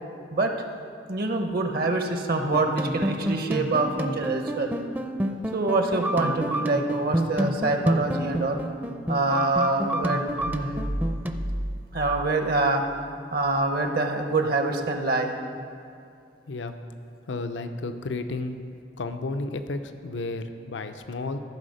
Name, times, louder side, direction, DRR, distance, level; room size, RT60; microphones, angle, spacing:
voice 1, 1.1-4.7 5.5-8.6 9.1-10.8 11.9-12.8 13.3-15.3, right 2 dB, 55° right, 5 dB, 0.8 m, -25 dB
sound 1, 2.4-11.3, right 1 dB, 10° right, 0.5 m, -29 dB
sound 2, 10.4-13.0, equal, 80° right, 1.6 m, -33 dB
voice 2, 17.3-18.6 19.0-21.4, left 3 dB, 80° left, 8 dB, 0.6 m, -32 dB
14.0 x 4.9 x 6.5 m, 2.4 s
head